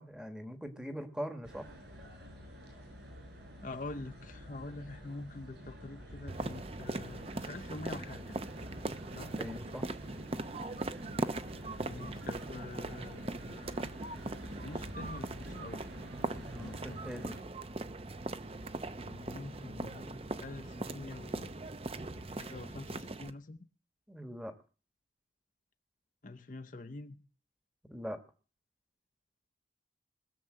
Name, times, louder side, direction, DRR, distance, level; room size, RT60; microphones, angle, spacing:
voice 1, 0.0-1.7 9.4-9.9 16.5-17.3 24.1-24.5 27.9-28.2, equal, 5° right, 1.2 m, -42 dB
sound 1, 1.4-17.4, equal, 65° right, 6.3 m, -49 dB
voice 2, 3.6-8.4 9.1-9.4 11.9-14.1 14.4-15.8 16.6-17.0 19.1-21.5 22.1-23.6 26.2-27.2, left 2 dB, 45° left, 0.7 m, -46 dB
sound 2, 6.3-23.3, right 2 dB, 30° right, 0.6 m, -40 dB
20.5 x 7.0 x 7.6 m
head